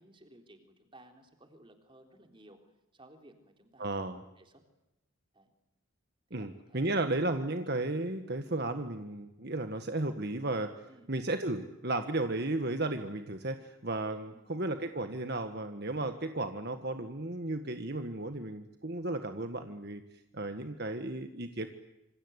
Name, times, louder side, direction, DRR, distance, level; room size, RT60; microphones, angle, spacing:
voice 1, 0.0-2.6 2.9-4.1 4.4-4.6 5.3-5.5 6.3-7.1 10.9-11.1 14.3-14.5, right 1 dB, 25° right, 5 dB, 3.8 m, -58 dB
voice 2, 3.8-4.2 6.3-10.7 11.1-21.7, right 2 dB, 50° right, 7 dB, 1.6 m, -34 dB
27.5 x 26.0 x 8.2 m, 0.92 s
head